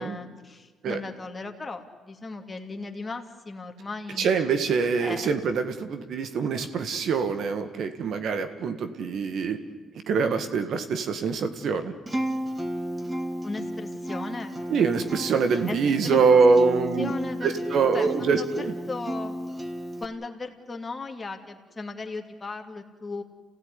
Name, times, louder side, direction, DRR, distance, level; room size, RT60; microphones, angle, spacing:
voice 1, 0.0-4.4 5.0-5.3 13.4-14.5 15.7-15.8 16.0-16.2 17.0-19.4 20.0-23.2, left 3 dB, 25° left, 3 dB, 2.5 m, -37 dB
voice 2, 4.2-9.6 10.1-11.9 14.7-17.1 17.4-18.7, right 5 dB, 70° right, 9 dB, 1.8 m, -24 dB
Acoustic guitar, 12.1-20.0, equal, 20° right, 2.3 m, -33 dB
28.5 x 16.0 x 9.9 m, 1.5 s
cardioid pair, 90°, 0 cm